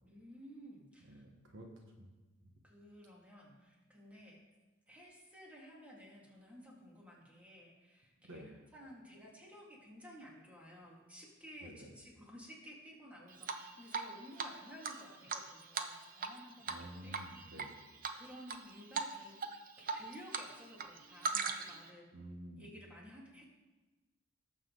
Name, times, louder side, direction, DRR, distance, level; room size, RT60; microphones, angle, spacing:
voice 1, 0.0-1.2 2.6-4.4 4.9-17.2 18.1-19.4 19.8-22.1 22.6-23.4, equal, 5° right, -3 dB, 2.2 m, -54 dB
voice 2, 1.0-1.7 2.0-2.1 8.3-8.6 11.6-11.9 16.7-17.8 22.1-22.7, right 1 dB, 60° right, 2 dB, 1.4 m, -51 dB
Drip, 13.4-14.1 14.4-14.5 14.8-16.4 16.6-16.8 17.1-17.7 18.0-18.6 18.9-19.1 19.4-20.5 20.7-21.8, right 5 dB, 40° right, 0.7 m, -38 dB
18.0 x 7.2 x 3.9 m, 1.2 s
head